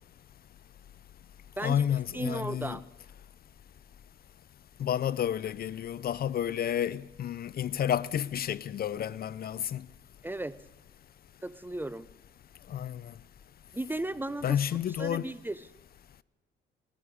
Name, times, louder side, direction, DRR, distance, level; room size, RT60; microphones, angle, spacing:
voice 1, 1.6-2.8 4.8-9.8 12.7-13.1 14.4-15.3, left 9 dB, 50° left, 0.5 m, -30 dB
voice 2, 2.1-2.8 10.2-10.6 11.4-12.1 13.7-14.6 15.0-15.6, right 1 dB, 10° right, 0.5 m, -35 dB
19.0 x 13.5 x 5.0 m
cardioid pair, 90°, 20 cm